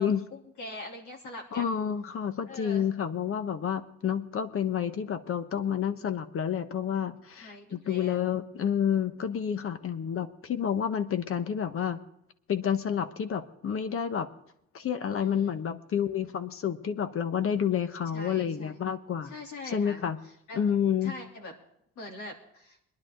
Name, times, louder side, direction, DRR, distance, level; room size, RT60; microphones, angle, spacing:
voice 1, 0.0-1.7 2.5-2.9 7.4-8.2 15.2-15.5 18.1-18.8 19.2-20.0 20.5-20.6 21.0-21.5 21.9-22.8, left 2 dB, 75° left, 1 dB, 3.1 m, -43 dB
voice 2, 1.5-12.0 12.5-14.3 14.7-19.3 19.7-20.2 20.5-21.1, left 8 dB, 50° left, 10 dB, 1.0 m, -29 dB
21.5 x 11.0 x 3.8 m, 0.76 s
cardioid pair, 120°, 29 cm